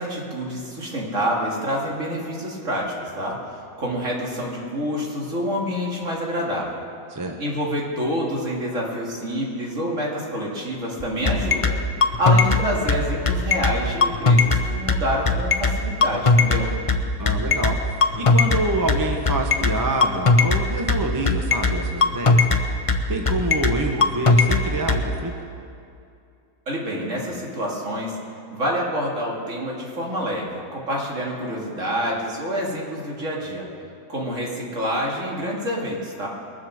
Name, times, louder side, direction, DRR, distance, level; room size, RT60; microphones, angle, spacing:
voice 1, 0.0-3.4 3.8-6.8 7.4-11.8 12.2-16.7 26.7-28.2 28.5-33.7 34.1-36.3, equal, 55° right, -3 dB, 2.8 m, -27 dB
sound 1, 11.0-25.0, left 3 dB, 35° left, 0.6 m, -18 dB
voice 2, 17.2-22.5 23.1-25.3, right 2 dB, 15° right, 2 dB, 0.9 m, -27 dB
22.0 x 7.6 x 6.4 m, 2.5 s
omnidirectional pair, 1.6 m